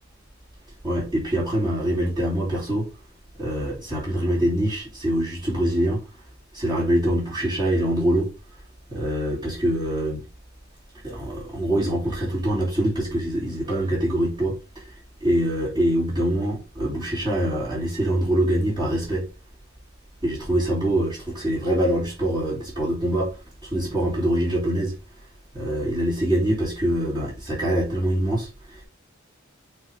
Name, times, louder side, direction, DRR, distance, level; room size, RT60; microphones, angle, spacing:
voice 1, 0.8-2.9 3.4-6.0 6.5-8.3 8.9-10.2 11.0-14.9 15.2-19.3 20.2-24.9 25.5-28.8, right 1 dB, 20° right, 2.7 m, -24 dB
7.8 x 3.4 x 3.6 m
head